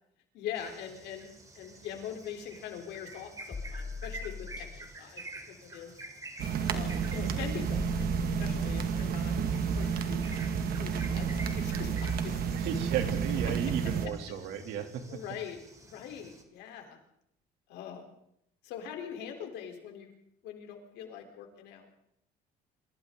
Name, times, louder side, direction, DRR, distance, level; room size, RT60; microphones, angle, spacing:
voice 1, 0.3-5.9 6.7-8.1 8.4-9.3 9.7-10.3 10.8-11.9 12.2-12.4 15.1-17.0 17.7-18.1 18.6-20.1 20.4-21.9, left 9 dB, 90° left, 3 dB, 3.9 m, -42 dB
sound 1, 0.6-16.4, right 2 dB, 20° right, 3.4 m, -49 dB
sound 2, 3.5-4.8 6.7-6.8 7.7-9.1 10.9-11.0 11.5-11.6, left 5 dB, 25° left, 1.5 m, -40 dB
sound 3, 6.4-14.1, right 6 dB, 60° right, 2.1 m, -31 dB
voice 2, 12.5-15.2, right 8 dB, 85° right, 5 dB, 3.0 m, -34 dB
27.0 x 25.0 x 3.9 m, 0.75 s
cardioid pair, 110°, 17 cm